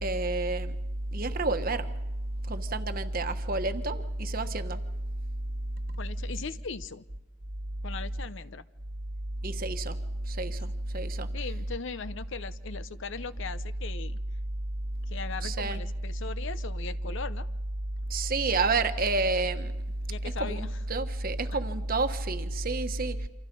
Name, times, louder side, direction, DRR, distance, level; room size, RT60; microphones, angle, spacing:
voice 1, 0.0-0.7 1.1-1.9 2.5-4.8 9.4-10.0 10.3-11.3 15.4-15.8 18.1-19.7 20.4-23.3, right 3 dB, 45° right, 8 dB, 1.3 m, -29 dB
voice 2, 6.0-7.0 7.8-8.7 11.3-14.2 15.1-17.5 20.1-20.7, left 5 dB, 60° left, 14 dB, 0.7 m, -39 dB
28.0 x 26.0 x 5.4 m, 1.0 s
head